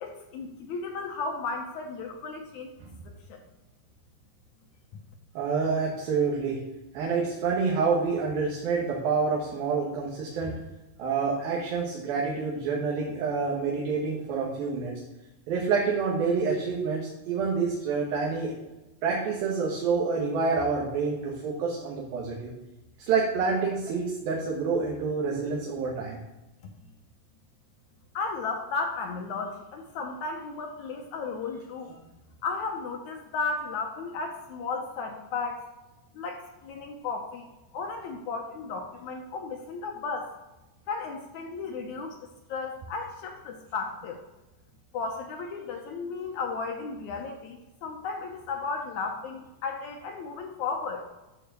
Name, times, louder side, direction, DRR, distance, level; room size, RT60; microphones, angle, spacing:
voice 1, 0.0-2.7 3.1-3.4 28.2-32.0 32.4-35.7 36.1-40.3 40.9-42.2 42.5-44.2 44.9-51.0, left 4 dB, 75° left, 3 dB, 1.8 m, -34 dB
voice 2, 5.3-6.6 6.9-10.6 11.0-15.0 15.5-18.5 19.0-22.5 23.1-26.2, right 5 dB, 80° right, -3 dB, 3.2 m, -27 dB
11.5 x 4.8 x 6.7 m, 1.0 s
omnidirectional pair, 4.2 m